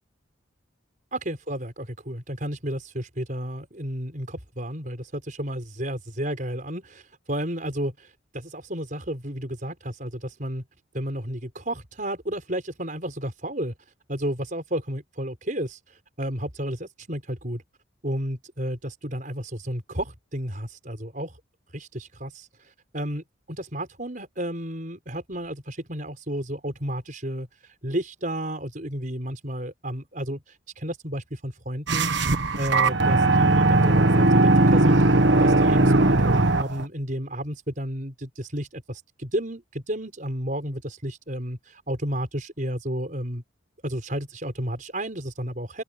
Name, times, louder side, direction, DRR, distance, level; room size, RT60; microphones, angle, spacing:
voice 1, 1.1-10.6 10.9-13.7 14.1-17.6 18.0-21.4 21.7-43.4 43.8-45.8, equal, 40° right, 5.5 m, -32 dB
sound 1, 31.9-36.8, right 2 dB, 60° right, 1.4 m, -19 dB
open air
head